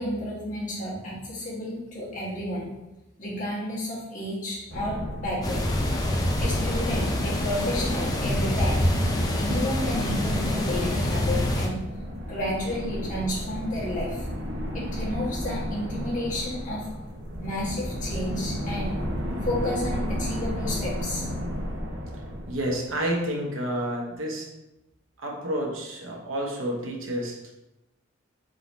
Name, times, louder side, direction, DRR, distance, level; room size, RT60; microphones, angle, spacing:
voice 1, 0.0-2.6 3.2-5.6 6.4-8.8 9.4-11.8 12.3-14.3 14.7-16.9 17.4-18.9 19.4-21.2, left 1 dB, 40° left, -6 dB, 1.4 m, -31 dB
sound 1, 4.7-23.1, equal, 60° right, 0.8 m, -33 dB
sound 2, 5.4-11.7, left 1 dB, 20° left, 0.5 m, -26 dB
voice 2, 22.5-24.5 25.2-27.4, right 1 dB, 85° right, -1 dB, 1.0 m, -30 dB
4.0 x 3.8 x 3.0 m, 0.95 s
head